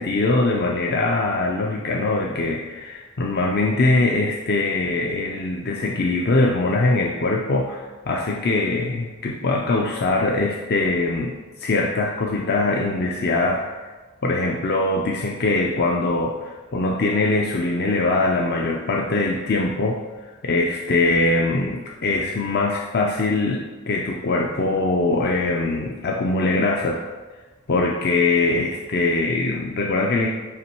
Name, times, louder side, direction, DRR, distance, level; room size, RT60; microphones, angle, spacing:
voice 1, 0.0-13.9 14.2-27.1 27.7-30.3, left 2 dB, 45° left, 0 dB, 0.5 m, -22 dB
8.0 x 3.1 x 4.4 m, 1.3 s
head